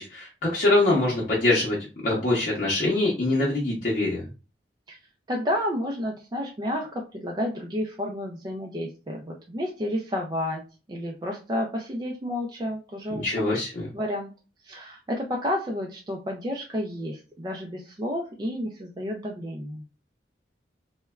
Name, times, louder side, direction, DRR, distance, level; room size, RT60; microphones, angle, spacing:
voice 1, 0.0-1.8 2.0-4.2 13.2-13.9, left 2 dB, 50° left, -6 dB, 0.7 m, -24 dB
voice 2, 5.3-10.6 10.9-13.7 13.9-14.3 14.6-19.8, left 1 dB, 25° right, 0 dB, 0.4 m, -31 dB
3.1 x 2.1 x 2.3 m, 0.33 s
head